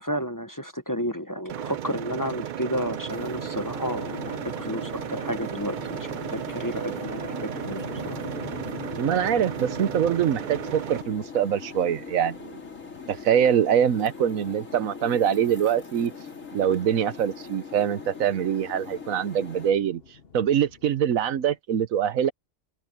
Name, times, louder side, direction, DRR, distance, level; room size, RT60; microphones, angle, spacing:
voice 1, 0.0-8.2, equal, 15° left, 1.1 m, -32 dB
sound 1, 1.5-11.0, right 10 dB, 70° right, 0.4 m, -34 dB
sound 2, 2.7-21.6, left 5 dB, 50° left, 1.3 m, -45 dB
sound 3, 3.1-19.7, left 5 dB, 75° left, 3.2 m, -41 dB
voice 2, 9.0-12.6 13.1-16.1 16.5-20.0 20.3-22.3, right 9 dB, 90° right, 1.3 m, -24 dB
open air
omnidirectional pair, 1.4 m